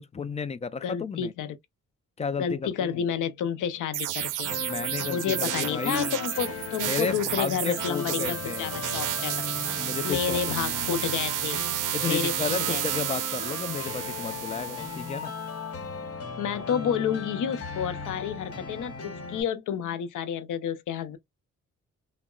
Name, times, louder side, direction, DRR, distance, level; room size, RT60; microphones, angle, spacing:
voice 1, 0.0-1.3 2.2-3.0 4.6-6.2 6.8-8.7 9.8-10.9 11.9-15.3, left 5 dB, 20° left, 0.3 m, -33 dB
voice 2, 0.8-1.6 2.4-4.5 5.1-9.5 10.0-11.6 12.1-12.8 16.4-21.2, left 8 dB, 80° left, 0.6 m, -30 dB
sound 1, 3.9-15.3, right 13 dB, 80° right, 0.5 m, -32 dB
sound 2, 4.4-19.4, left 4 dB, 50° left, 1.0 m, -37 dB
3.6 x 2.1 x 2.2 m
cardioid pair, 100°, 31 cm